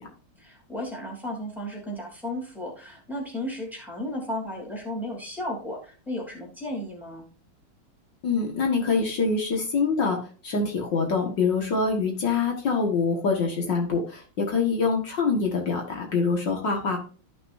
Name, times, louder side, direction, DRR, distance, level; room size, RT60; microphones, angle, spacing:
voice 1, 0.4-7.2, left 1 dB, ahead, -2 dB, 3.0 m, -34 dB
voice 2, 8.2-10.2 10.4-17.0, left 4 dB, 65° left, 1 dB, 2.3 m, -25 dB
13.5 x 6.1 x 2.6 m, 0.38 s
omnidirectional pair, 2.1 m